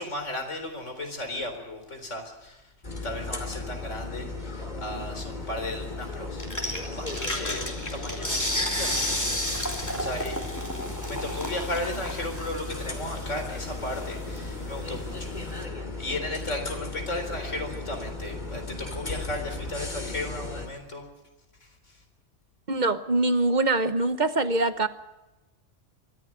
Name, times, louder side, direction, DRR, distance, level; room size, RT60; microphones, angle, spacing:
voice 1, 0.0-2.6 3.0-9.2 9.5-10.4 11.0-21.0 21.6-22.0, left 1 dB, 80° left, 6 dB, 4.4 m, -35 dB
sound 1, 2.8-20.7, left 3 dB, 35° left, 3.0 m, -36 dB
sound 2, 6.4-15.6, left 1 dB, 15° left, 3.1 m, -33 dB
voice 2, 22.7-24.9, right 2 dB, 40° right, 11 dB, 1.2 m, -24 dB
24.0 x 15.0 x 9.1 m, 1.0 s
omnidirectional pair, 1.2 m